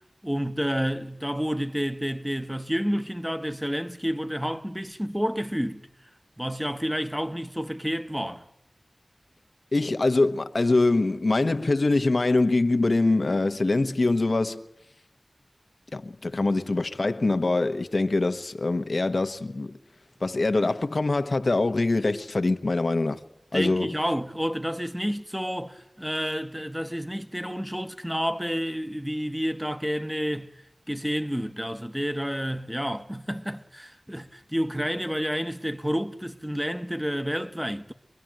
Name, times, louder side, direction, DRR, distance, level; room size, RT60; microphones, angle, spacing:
voice 1, 0.2-5.8 6.4-8.5 23.5-30.5 30.9-37.9, equal, 5° right, 1.1 m, -30 dB
voice 2, 9.7-14.6 15.9-19.7 20.2-23.2 23.5-23.9, left 2 dB, 75° left, 1.0 m, -24 dB
24.0 x 23.5 x 9.1 m
wide cardioid pair, 50°, 0 cm